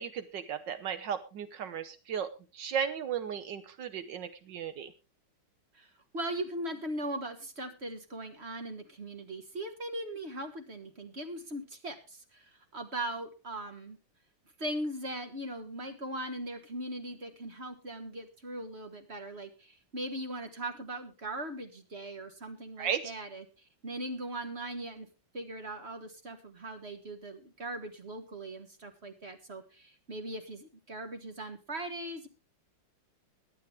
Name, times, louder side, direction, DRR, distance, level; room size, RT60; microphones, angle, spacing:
voice 1, 0.0-4.9 22.8-23.1, right 8 dB, 75° right, 11 dB, 1.6 m, -35 dB
voice 2, 5.7-14.0 14.6-25.1 25.3-32.3, right 1 dB, 35° right, 6 dB, 1.7 m, -39 dB
22.0 x 8.7 x 3.4 m, 0.30 s
omnidirectional pair, 2.0 m